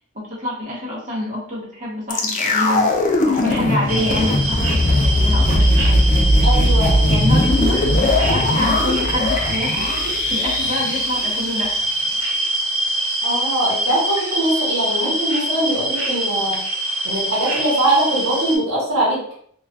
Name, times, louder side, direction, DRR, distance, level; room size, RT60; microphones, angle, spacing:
voice 1, 0.1-2.9 3.2-6.0 7.1-9.9 10.3-11.9, left 1 dB, 40° right, -4 dB, 0.8 m, -26 dB
sound 1, 2.1-12.2 12.5-12.6, left 1 dB, 40° left, 0.3 m, -19 dB
sound 2, 3.9-18.6, right 1 dB, 85° right, 0.5 m, -24 dB
voice 2, 6.4-7.2 13.2-16.6 17.0-19.2, right 1 dB, 65° right, -8 dB, 0.9 m, -21 dB
2.3 x 2.3 x 2.3 m, 0.63 s
head